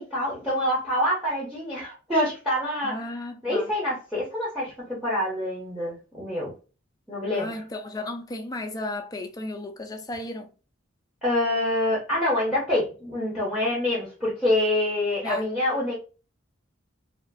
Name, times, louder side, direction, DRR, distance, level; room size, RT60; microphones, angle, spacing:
voice 1, 0.0-3.0 3.4-6.5 7.1-7.5 11.2-16.0, left 1 dB, 5° right, 0.9 m, -26 dB
voice 2, 2.8-3.7 7.3-10.5 15.2-15.5, left 2 dB, 20° left, 0.4 m, -34 dB
2.8 x 2.5 x 2.5 m
head